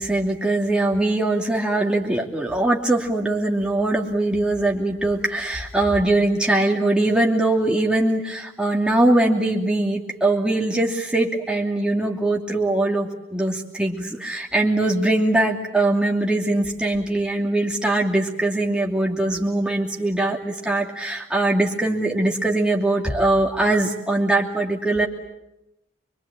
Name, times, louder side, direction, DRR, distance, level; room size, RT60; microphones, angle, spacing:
voice 1, 0.0-25.1, right 2 dB, 5° right, 0 dB, 2.8 m, -21 dB
25.5 x 23.0 x 8.9 m, 0.89 s
head